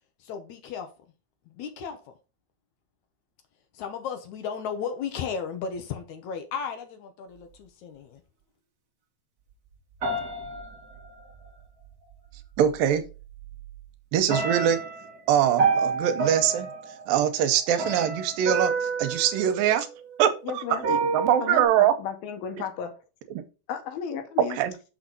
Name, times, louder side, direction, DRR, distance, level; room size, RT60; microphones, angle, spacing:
voice 1, 0.2-0.9 1.5-2.1 3.7-8.2, left 6 dB, 70° left, 2.0 m, -35 dB
sound 1, 10.0-11.5 12.6-12.7 13.2-13.8 14.3-20.2 20.8-21.6, right 4 dB, 50° right, 1.1 m, -29 dB
voice 2, 12.6-13.0 14.1-14.8 15.3-16.7 17.1-19.9 20.2-21.9 23.3-23.4 24.5-24.7, right 10 dB, 80° right, 2.5 m, -23 dB
voice 3, 20.4-20.9 21.4-23.0 23.7-24.6, left 7 dB, 85° left, 3.0 m, -34 dB
6.4 x 6.0 x 3.9 m
omnidirectional pair, 4.1 m